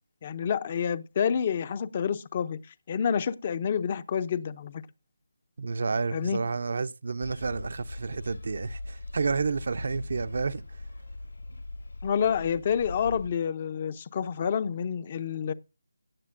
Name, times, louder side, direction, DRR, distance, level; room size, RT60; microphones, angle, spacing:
voice 1, 0.2-2.6 2.9-4.8 6.1-6.4 12.0-15.5, left 7 dB, 30° left, 0.5 m, -28 dB
voice 2, 5.6-10.6, right 4 dB, 50° right, 0.5 m, -30 dB
sound 1, 7.2-13.3, left 2 dB, 85° left, 6.5 m, -41 dB
16.5 x 9.4 x 2.5 m
figure-of-eight pair, 170°, 0 cm